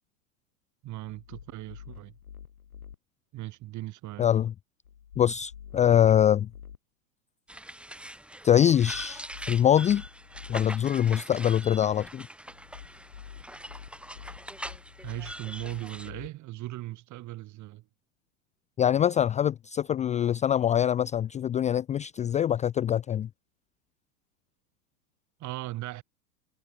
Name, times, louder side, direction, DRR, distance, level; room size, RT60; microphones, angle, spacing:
voice 1, 0.8-2.2 3.3-4.3 15.0-17.9 25.4-26.0, right 17 dB, 40° right, 7.4 m, -38 dB
sound 1, 1.0-3.0 4.8-6.8 8.7-10.6 12.5-16.3, left 8 dB, 80° left, 6.1 m, -48 dB
voice 2, 4.2-4.5 5.2-6.5 8.4-10.0 10.5-12.3 18.8-23.3, left 10 dB, 15° left, 0.5 m, -24 dB
sound 2, 7.5-16.1, right 1 dB, ahead, 6.2 m, -43 dB
hypercardioid pair, 95°, 43 cm